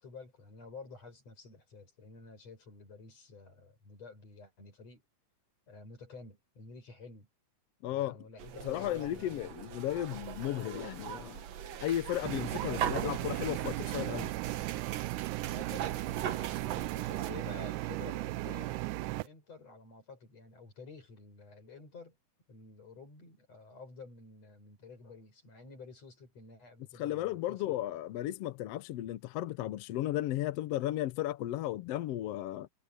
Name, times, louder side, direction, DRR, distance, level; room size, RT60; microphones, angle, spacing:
voice 1, 0.0-5.0 5.7-7.3 7.9-9.9 15.4-22.2 22.5-27.8, left 4 dB, 50° left, 7.7 m, -51 dB
voice 2, 7.8-8.2 8.6-11.4 11.8-14.3 27.0-32.7, left 14 dB, 75° left, 1.4 m, -34 dB
sound 1, 8.4-17.3, right 10 dB, 60° right, 2.1 m, -40 dB
sound 2, 12.2-19.3, right 20 dB, 80° right, 1.9 m, -36 dB
omnidirectional pair, 3.7 m